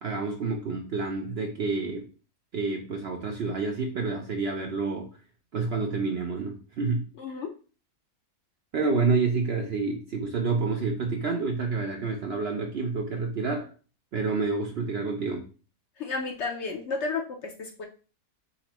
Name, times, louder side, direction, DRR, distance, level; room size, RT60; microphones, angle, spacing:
voice 1, 0.0-2.1 2.5-5.1 5.5-7.0 8.7-13.7 14.1-15.5, right 4 dB, 60° right, 2 dB, 0.6 m, -28 dB
voice 2, 7.2-7.5 16.0-17.9, left 4 dB, 60° left, 3 dB, 0.8 m, -32 dB
4.2 x 3.9 x 2.9 m, 0.37 s
omnidirectional pair, 1.6 m